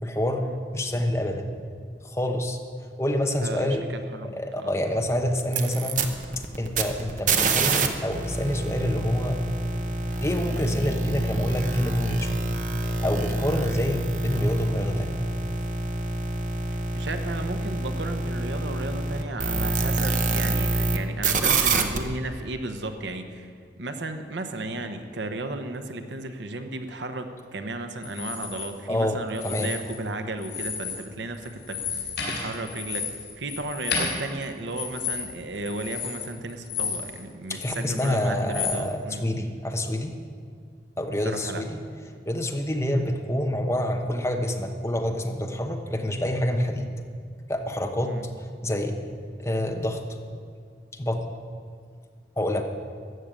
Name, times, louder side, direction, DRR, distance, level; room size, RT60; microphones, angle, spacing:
voice 1, 0.0-0.4 0.7-1.5 2.0-2.6 3.0-3.8 4.3-6.0 6.6-9.4 10.2-12.4 12.8-15.2 28.9-29.2 29.4-29.7 37.5-40.1 41.0-41.8 42.3-46.9 47.5-48.2 48.6-49.0 49.4-50.0 50.9-51.2 52.4-52.6, left 1 dB, 15° left, 3 dB, 1.0 m, -27 dB
voice 2, 3.4-4.7 16.9-39.3 41.2-41.6 48.0-48.3, right 2 dB, 80° right, 7 dB, 1.0 m, -34 dB
sound 1, 5.4-7.9 8.1-21.0 21.2-22.0, right 3 dB, 45° right, 1.0 m, -26 dB
sound 2, 28.0-28.7 29.3-30.1 30.4-31.0 31.3-37.2 37.5-38.8, left 6 dB, 75° left, 4.4 m, -32 dB
14.5 x 6.7 x 9.0 m, 2.1 s
head